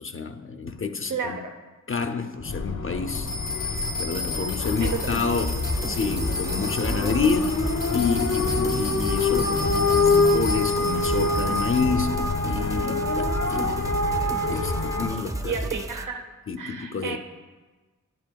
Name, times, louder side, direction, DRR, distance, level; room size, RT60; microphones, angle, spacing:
voice 1, 0.0-1.4 1.9-3.4 3.7-13.9 14.5-15.6 16.5-17.2, left 5 dB, 40° left, 0.5 m, -29 dB
voice 2, 1.1-1.5 4.8-4.9 15.4-16.2 16.6-17.2, right 6 dB, 70° right, 0.9 m, -31 dB
sound 1, 2.4-15.1, left 3 dB, 65° left, 0.9 m, -26 dB
sound 2, 3.1-11.8, left 3 dB, 85° left, 1.6 m, -34 dB
sound 3, 4.8-16.1, right 1 dB, 10° right, 0.5 m, -33 dB
10.5 x 7.6 x 2.3 m
cardioid pair, 50°, 32 cm